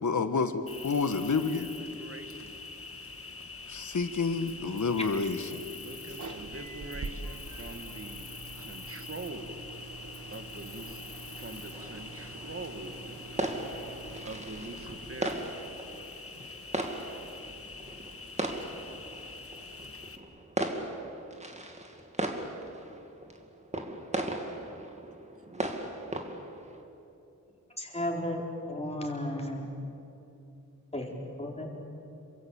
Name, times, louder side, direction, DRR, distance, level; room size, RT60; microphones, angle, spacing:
voice 1, 0.0-1.7 3.7-5.6, left 4 dB, 70° left, 9 dB, 1.6 m, -29 dB
Cricket, 0.7-20.2, left 3 dB, 45° left, 1.8 m, -45 dB
voice 2, 1.3-2.5 5.7-8.3 8.6-9.7 10.3-11.0 11.4-13.9 14.2-15.9 25.4-25.7, right 2 dB, 45° right, 7 dB, 1.8 m, -44 dB
sound 1, 3.6-15.3, right 3 dB, 75° right, 2.0 m, -46 dB
sound 2, 11.7-26.8, right 1 dB, 20° right, 2.6 m, -38 dB
voice 3, 27.8-28.4 28.7-29.7 30.9-31.1 31.4-31.7, left 1 dB, 20° left, 0 dB, 4.4 m, -33 dB
27.5 x 24.0 x 8.9 m, 2.9 s
wide cardioid pair, 100°, 31 cm